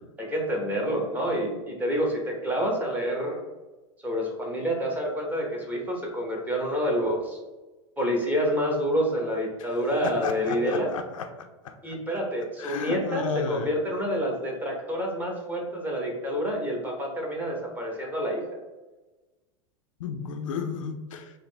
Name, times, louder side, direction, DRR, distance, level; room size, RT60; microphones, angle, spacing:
voice 1, 0.2-3.4 4.0-7.4 8.0-10.9 11.8-18.4, equal, 10° right, -1 dB, 1.0 m, -28 dB
voice 2, 10.0-11.3 11.6-12.0 12.6-13.7 20.0-21.3, left 6 dB, 85° left, 6 dB, 0.5 m, -33 dB
3.8 x 2.6 x 3.3 m, 1.2 s
hypercardioid pair, 120°, 16 cm